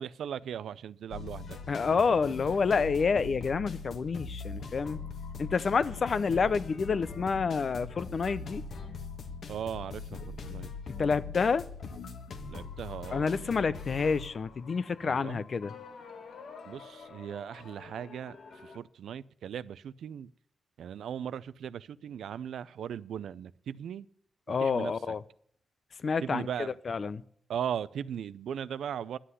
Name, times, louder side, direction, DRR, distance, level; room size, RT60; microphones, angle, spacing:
voice 1, 0.0-1.6 9.5-10.7 12.5-13.3 15.0-15.5 16.7-20.3 20.8-24.1 24.6-24.9 26.2-26.7 27.5-29.2, right 9 dB, 85° right, 0.4 m, -38 dB
sound 1, 1.1-18.8, left 4 dB, 70° left, 1.4 m, -42 dB
voice 2, 1.7-5.0 5.4-8.6 11.0-11.6 13.1-15.7 24.5-25.2 26.0-27.2, left 5 dB, 50° left, 0.6 m, -28 dB
11.5 x 7.7 x 8.2 m
cardioid pair, 90°, 0 cm